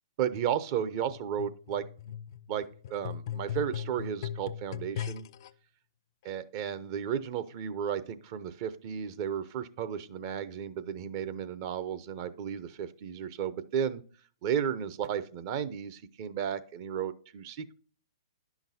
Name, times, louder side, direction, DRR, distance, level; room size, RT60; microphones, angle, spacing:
voice 1, 0.2-2.1 2.5-5.2 6.2-14.0 14.4-17.7, right 8 dB, 45° right, 13 dB, 0.6 m, -34 dB
sound 1, 1.1-5.5 6.3-6.4, left 9 dB, 55° left, 0.4 m, -39 dB
10.5 x 5.9 x 2.7 m, 0.43 s
hypercardioid pair, 120°, 3 cm